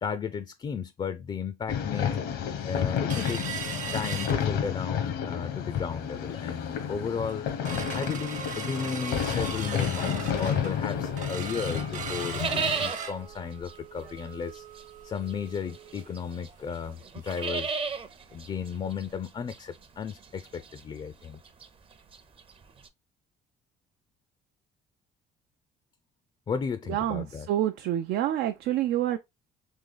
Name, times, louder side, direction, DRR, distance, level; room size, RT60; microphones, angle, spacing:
voice 1, 0.0-2.2 2.6-3.4 3.9-7.5 7.9-14.7 15.0-17.7 18.3-21.4 26.5-27.5, left 6 dB, 30° left, 0.4 m, -34 dB
sound 1, 1.7-12.9, left 8 dB, 85° left, 1.0 m, -31 dB
sound 2, 3.1-5.0 5.4-5.5 5.8-6.2 6.6-6.7 7.1-17.6 17.9-18.0 18.4-18.6 19.1-19.2, right 6 dB, 50° right, 1.0 m, -39 dB
sound 3, 9.1-11.1 11.4-22.9, right 5 dB, 35° right, 0.6 m, -36 dB
voice 2, 26.9-29.2, right 12 dB, 75° right, 0.4 m, -27 dB
3.7 x 3.0 x 3.8 m
cardioid pair, 110°, 17 cm